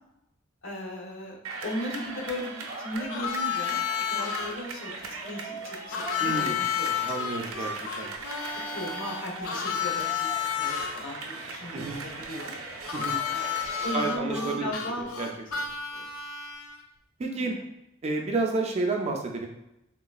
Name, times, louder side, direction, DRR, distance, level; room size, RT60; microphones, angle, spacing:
voice 1, 0.6-7.4 7.7-7.9 8.7-12.5 13.3-15.0 15.9-16.1 17.3-17.5, left 1 dB, 65° left, -1 dB, 0.8 m, -37 dB
sound 1, 1.4-13.9, right 3 dB, 80° right, 0.5 m, -39 dB
Harmonica, 3.1-4.5 5.9-10.9 12.9-16.8, left 8 dB, 85° left, 0.4 m, -31 dB
voice 2, 6.2-6.6 7.0-8.1 11.7-12.0 12.9-13.2 13.9-14.7 15.0-15.3 17.2-17.6 18.0-19.5, right 3 dB, 30° right, 2 dB, 0.3 m, -30 dB
3.7 x 2.3 x 2.3 m, 0.87 s
head